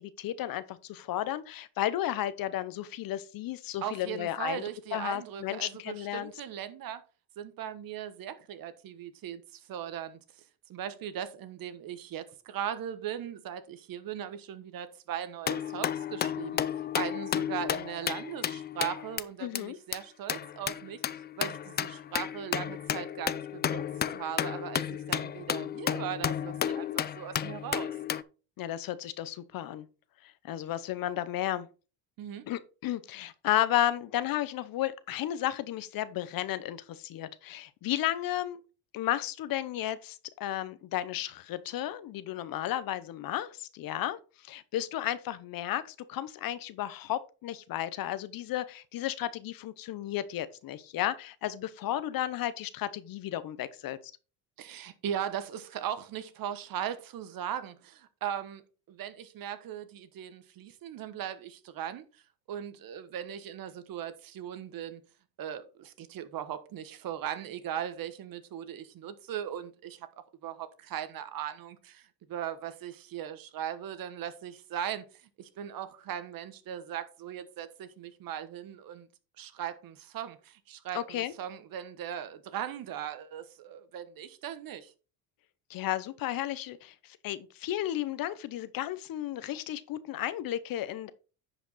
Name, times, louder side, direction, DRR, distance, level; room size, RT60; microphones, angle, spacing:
voice 1, 0.0-4.6 4.9-6.3 19.4-19.8 28.6-29.8 30.2-31.7 32.5-38.6 38.9-54.0 80.9-81.3 85.7-91.1, left 13 dB, 50° left, 0.9 m, -33 dB
voice 2, 3.8-7.0 7.4-10.2 10.7-21.0 21.4-23.8 24.1-27.9 32.2-32.5 54.6-58.6 58.9-62.0 62.5-65.0 65.4-70.1 70.4-75.1 75.4-79.1 79.4-84.9, right 10 dB, 50° right, 1.2 m, -38 dB
sound 1, 15.5-19.2 19.6-19.7 19.9-20.0 20.3-28.2, left 9 dB, 25° left, 0.4 m, -33 dB
10.0 x 5.1 x 4.0 m
supercardioid pair, 100°, 45 cm